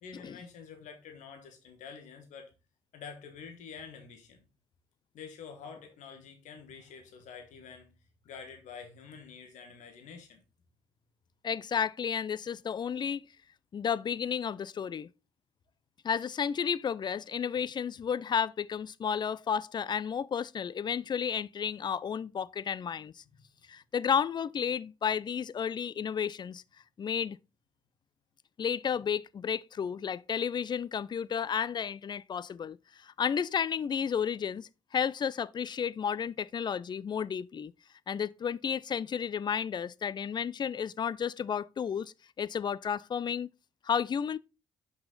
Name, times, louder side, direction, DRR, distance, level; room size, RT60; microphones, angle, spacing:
voice 1, 0.0-2.5 2.9-4.5 5.1-7.9 8.2-10.4, left 6 dB, 65° left, 1.3 m, -47 dB
voice 2, 11.4-13.2 13.7-15.1 16.0-23.1 23.7-26.6 27.0-27.4 28.6-32.8 33.0-37.7 38.1-43.5 43.8-44.4, left 7 dB, 35° left, 0.4 m, -32 dB
5.6 x 5.6 x 3.7 m
hypercardioid pair, 45°, 13 cm